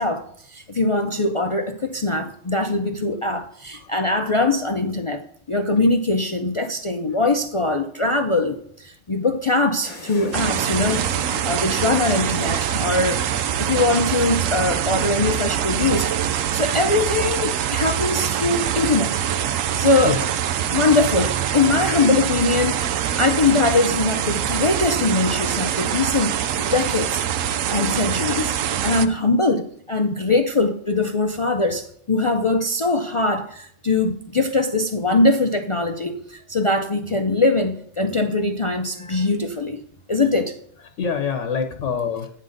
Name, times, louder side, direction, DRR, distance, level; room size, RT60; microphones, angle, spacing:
voice 1, 0.0-5.2 5.5-13.2 13.6-19.2 19.5-20.1 20.7-26.3 26.6-39.8 40.1-40.6, left 2 dB, 50° left, 5 dB, 0.3 m, -22 dB
sound 1, 9.8-15.3, left 3 dB, 25° left, 1.4 m, -41 dB
voice 2, 10.1-10.4 11.3-11.4 19.7-20.3 21.6-22.2 22.7-23.2 27.4-27.5 40.8-42.3, left 6 dB, 70° left, 6 dB, 1.1 m, -29 dB
sound 2, 10.3-29.1, right 10 dB, 85° right, 1.0 m, -24 dB
9.3 x 3.9 x 6.4 m, 0.66 s
omnidirectional pair, 1.3 m